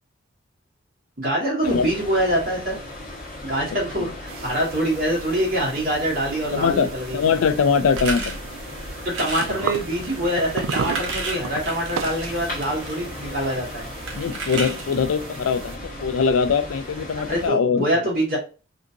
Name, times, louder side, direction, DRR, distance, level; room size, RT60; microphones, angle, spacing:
voice 1, 1.2-2.8 3.4-7.2 9.0-13.9 17.3-18.4, right 1 dB, 45° right, 1.8 m, -25 dB
sound 1, 1.6-17.5, left 1 dB, 40° left, 1.2 m, -37 dB
sound 2, 4.3-15.8, right 6 dB, 85° right, 0.4 m, -36 dB
voice 2, 6.5-8.4 14.2-17.8, left 6 dB, 85° left, 0.4 m, -22 dB
sound 3, 7.9-8.4 9.1-9.6 10.4-13.0 14.1-15.0, right 3 dB, 65° right, 0.9 m, -31 dB
3.6 x 2.7 x 2.5 m
head